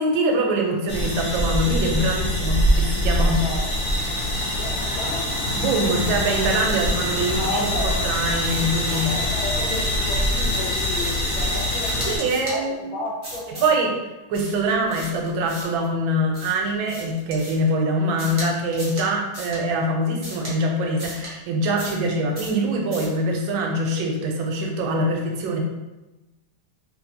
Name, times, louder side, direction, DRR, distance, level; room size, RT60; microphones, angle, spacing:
voice 1, 0.0-3.4 5.6-7.7 8.0-9.1 12.1-12.8 13.6-13.9 14.3-25.6, right 1 dB, 80° right, 1 dB, 1.3 m, -23 dB
sound 1, 0.9-12.2, equal, 60° left, 0.7 m, -24 dB
voice 2, 3.1-3.7 4.5-5.4 7.2-8.1 8.9-13.6, left 2 dB, 75° left, -2 dB, 1.6 m, -33 dB
sound 2, 8.4-9.2 9.7-10.0 10.4-11.3 11.7-12.6 13.2-13.8 14.3-15.8 16.3-17.7 18.2-18.5 18.7-19.1 19.3-19.6 20.2-20.5 21.0-21.3 21.8-22.1 22.3-22.6 22.9-23.2, right 1 dB, 35° right, 0.4 m, -37 dB
3.2 x 3.1 x 2.6 m, 1.1 s
omnidirectional pair, 2.2 m